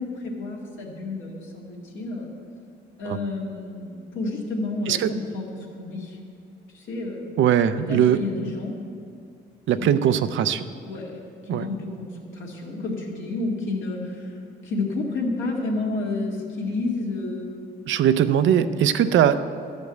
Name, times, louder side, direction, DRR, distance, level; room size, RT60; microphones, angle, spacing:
voice 1, 0.0-2.3 3.0-6.2 6.7-7.3 7.9-8.8 9.8-10.0 10.8-11.2 11.5-14.4 14.6-17.9 18.5-18.6, left 2 dB, 75° left, -2 dB, 2.2 m, -30 dB
voice 2, 7.4-8.2 9.7-10.6 11.5-11.7 17.9-19.4, right 9 dB, 75° right, 11 dB, 0.5 m, -20 dB
12.5 x 5.2 x 7.8 m, 2.5 s
cardioid pair, 90°, 20 cm